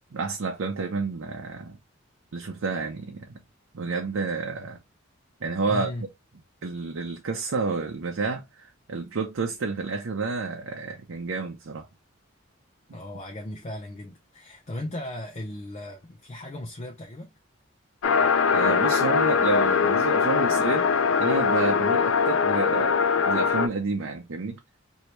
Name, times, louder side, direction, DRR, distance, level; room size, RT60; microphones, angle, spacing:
voice 1, 0.1-1.8 2.3-3.4 3.7-4.8 5.4-5.9 6.6-11.9 18.1-18.2 18.5-20.9 21.2-23.0 23.3-24.6, right 4 dB, 75° right, 0.6 m, -30 dB
voice 2, 5.6-6.1 12.9-17.3, left 1 dB, 35° left, 0.6 m, -37 dB
sound 1, 18.0-23.7, left 6 dB, 85° left, 0.4 m, -22 dB
3.0 x 2.7 x 3.1 m
head